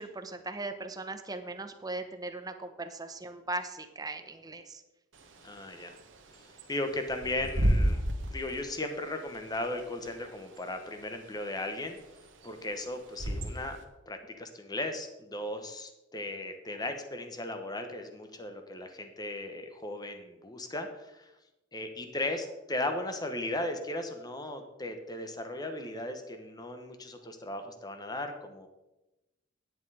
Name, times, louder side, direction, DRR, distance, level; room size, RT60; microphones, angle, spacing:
voice 1, 0.0-4.8, right 2 dB, 20° right, 8 dB, 0.8 m, -39 dB
Bird / Wind, 5.1-13.8, equal, 70° right, 1.3 m, -33 dB
voice 2, 5.4-6.0 6.7-8.0 8.3-12.0 12.4-13.8 14.1-21.2 21.7-28.7, left 1 dB, 20° left, 6 dB, 1.1 m, -36 dB
9.7 x 8.3 x 4.9 m, 0.97 s
head